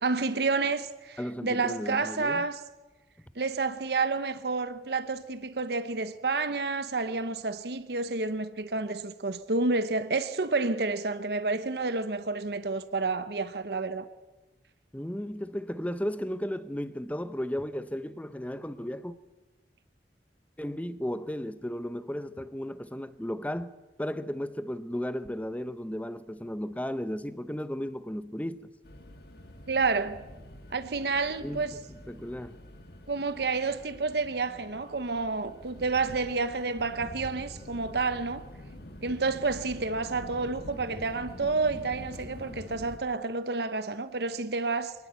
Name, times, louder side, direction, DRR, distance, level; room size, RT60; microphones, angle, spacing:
voice 1, 0.0-2.6 3.3-14.1 29.7-30.2 30.7-31.8 33.1-38.4 39.0-44.9, right 3 dB, 65° right, 0.9 m, -29 dB
voice 2, 1.2-2.4 14.9-19.2 20.6-23.7 24.0-28.7 31.4-31.8 32.1-32.6, equal, 10° left, 0.7 m, -34 dB
sound 1, 28.8-43.0, left 1 dB, 60° left, 2.0 m, -46 dB
23.0 x 19.0 x 8.2 m
head